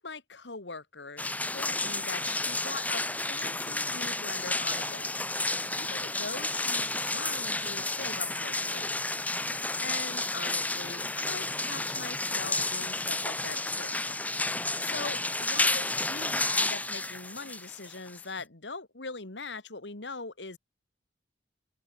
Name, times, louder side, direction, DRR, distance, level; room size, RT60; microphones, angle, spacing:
voice 1, 0.0-3.0 3.3-5.2 5.7-8.9 9.8-14.2 14.8-20.6, left 4 dB, 90° left, 2.4 m, -41 dB
sound 1, 1.2-18.4, left 2 dB, 10° left, 2.8 m, -31 dB
open air
head